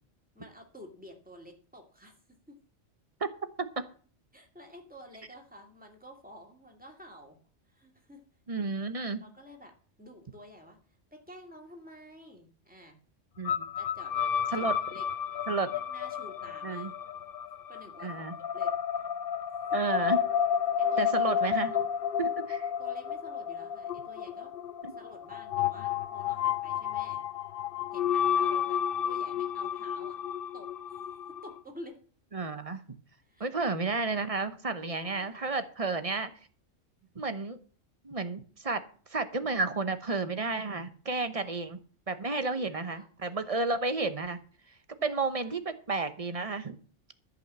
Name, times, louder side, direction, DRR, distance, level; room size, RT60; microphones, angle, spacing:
voice 1, 0.3-2.1 2.5-2.6 4.3-7.4 7.7-8.2 9.2-9.7 10.0-10.8 11.1-13.0 13.8-14.3 14.6-15.0 15.9-16.9 17.7-18.3 18.5-18.7 20.7-21.1 21.5-21.8 22.8-24.5 25.0-27.2 27.9-30.2 30.5-31.0 31.4-31.9 33.2-33.5 34.9-35.5 37.0-37.1 41.4-41.6 42.4-43.1 45.0-45.5, equal, 5° right, 1 dB, 2.5 m, -50 dB
voice 2, 8.5-9.2 13.4-13.7 14.5-14.7 15.5-15.7 16.6-16.9 18.0-18.3 19.7-20.2 21.0-21.7 22.2-22.7 24.8-24.9 32.3-33.0 33.4-36.3 37.1-37.6 38.0-38.8 39.1-44.4 45.0-46.8, right 3 dB, 30° right, 10 dB, 1.0 m, -32 dB
sound 1, 13.5-31.6, left 8 dB, 55° left, 0.8 m, -31 dB
14.0 x 5.6 x 7.6 m, 0.43 s
omnidirectional pair, 1.3 m